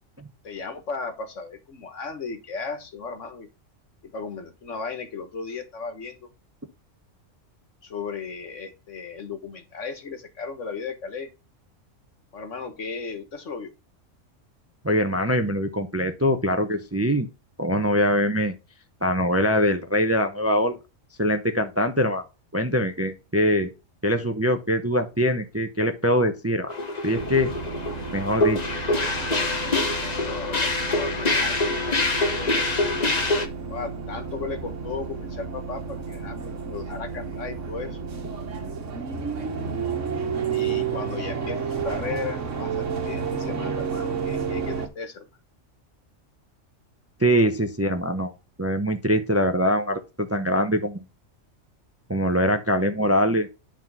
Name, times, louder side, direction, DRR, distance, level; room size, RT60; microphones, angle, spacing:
voice 1, 0.4-3.5 4.0-6.3 7.8-11.3 12.3-13.7 30.0-31.7 32.1-32.8 33.7-38.0 40.5-45.3, left 4 dB, 70° left, 1.7 m, -35 dB
voice 2, 14.8-17.3 17.6-18.5 19.0-20.8 21.2-22.2 22.5-23.7 24.0-26.7 27.0-27.5 28.1-28.8 47.2-48.3 48.6-51.0 52.1-53.5, equal, 15° right, 0.6 m, -23 dB
sound 1, 26.7-33.5, left 2 dB, 35° left, 1.2 m, -25 dB
sound 2, 27.1-44.9, right 6 dB, 70° right, 1.6 m, -31 dB
10.5 x 3.8 x 5.4 m
omnidirectional pair, 1.3 m